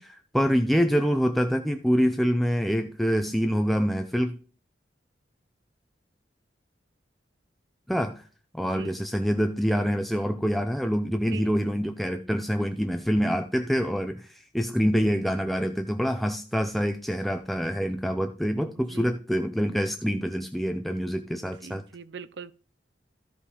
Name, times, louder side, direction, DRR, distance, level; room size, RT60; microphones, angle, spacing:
voice 1, 0.0-4.4 7.9-8.2 8.5-21.8, equal, ahead, 0.6 m, -26 dB
voice 2, 21.6-22.5, right 5 dB, 75° right, 0.6 m, -41 dB
13.5 x 5.4 x 4.9 m
head